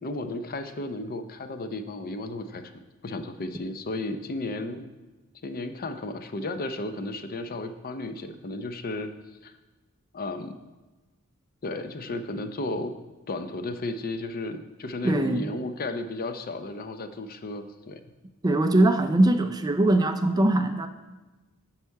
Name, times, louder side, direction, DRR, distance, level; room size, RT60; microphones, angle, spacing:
voice 1, 0.0-2.6 3.0-4.9 5.4-9.1 9.4-9.5 10.1-10.5 11.6-12.9 13.3-18.0, left 2 dB, 40° left, 9 dB, 0.6 m, -34 dB
voice 2, 15.0-15.5 18.4-20.9, right 1 dB, 20° right, 8 dB, 0.4 m, -21 dB
9.8 x 5.7 x 4.6 m, 1.2 s
head